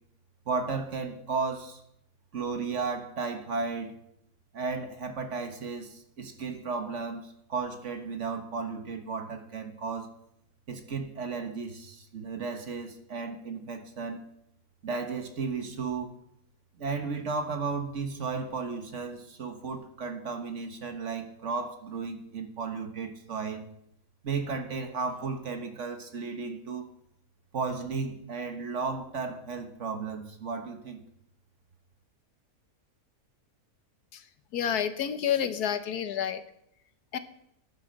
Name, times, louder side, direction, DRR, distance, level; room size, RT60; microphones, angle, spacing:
voice 1, 0.5-1.8 2.3-4.0 4.5-10.1 10.7-14.2 14.8-16.1 16.8-23.7 24.2-26.9 27.5-31.0, right 4 dB, 55° right, 1.5 m, -34 dB
voice 2, 34.5-36.4 37.1-37.2, left 9 dB, 85° left, 1.5 m, -29 dB
11.0 x 9.6 x 6.3 m
omnidirectional pair, 1.6 m